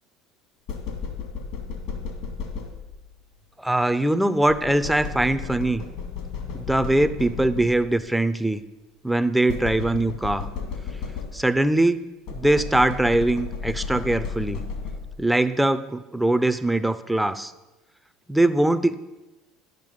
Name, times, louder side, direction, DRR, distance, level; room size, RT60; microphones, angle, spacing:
sound 1, 0.7-3.1 4.5-8.1 9.5-11.7 12.3-15.3, left 5 dB, 65° left, 2.0 m, -33 dB
voice 1, 3.6-5.9 6.5-8.6 9.0-10.5 11.3-12.0 12.3-14.6 15.2-17.5 18.3-19.2, right 1 dB, 5° right, 13 dB, 0.5 m, -22 dB
10.0 x 6.7 x 5.4 m, 1.1 s
hypercardioid pair, 85°, 0 cm